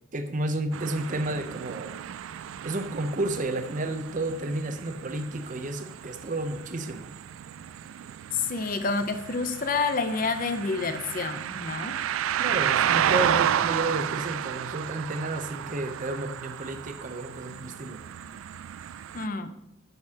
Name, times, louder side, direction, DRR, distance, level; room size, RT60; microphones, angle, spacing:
voice 1, 0.1-1.9 2.6-7.1 12.4-18.0, right 2 dB, 40° right, 8 dB, 0.7 m, -31 dB
sound 1, 0.7-19.3, right 10 dB, 85° right, 0.3 m, -32 dB
voice 2, 8.3-12.0 19.1-19.5, left 4 dB, 45° left, 9 dB, 0.6 m, -28 dB
11.0 x 6.6 x 2.9 m, 0.84 s
head